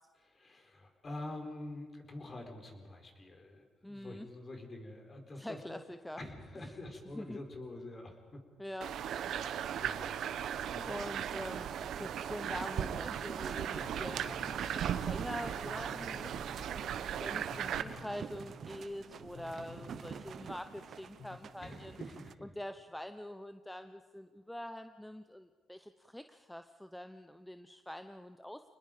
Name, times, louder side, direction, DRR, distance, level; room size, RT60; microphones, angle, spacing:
voice 1, 0.3-5.8 6.1-8.4 9.2-10.1 10.7-10.9 21.6-22.5, left 2 dB, 35° left, 4 dB, 4.2 m, -46 dB
voice 2, 3.8-4.3 5.4-6.2 7.1-7.4 8.6-8.9 10.9-22.0 22.4-28.6, left 1 dB, 5° left, 9 dB, 0.8 m, -45 dB
sound 1, 8.8-17.8, right 9 dB, 75° right, 1.0 m, -37 dB
sound 2, 11.1-22.4, right 7 dB, 55° right, 0.6 m, -48 dB
sound 3, 13.5-21.5, left 6 dB, 50° left, 1.4 m, -54 dB
28.5 x 20.0 x 5.2 m, 1.5 s
cardioid pair, 90°, 0 cm